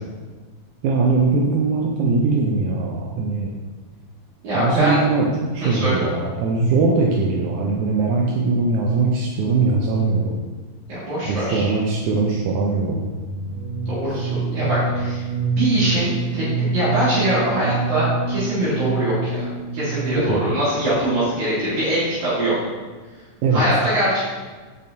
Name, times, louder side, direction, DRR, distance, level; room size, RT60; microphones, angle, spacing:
voice 1, 0.8-3.5 4.5-5.3 5.5-10.4 11.2-13.0 20.3-20.4 23.4-23.6, right 3 dB, 80° right, -1 dB, 1.7 m, -20 dB
voice 2, 4.4-5.0 5.6-6.1 10.9-11.7 13.9-15.3 15.5-16.4 16.7-19.1 19.4-22.5 23.5-24.2, right 1 dB, 60° right, -11 dB, 3.0 m, -22 dB
sound 1, 12.8-20.5, right 3 dB, 70° left, 2.8 m, -26 dB
8.5 x 5.4 x 2.7 m, 1.4 s
omnidirectional pair, 4.1 m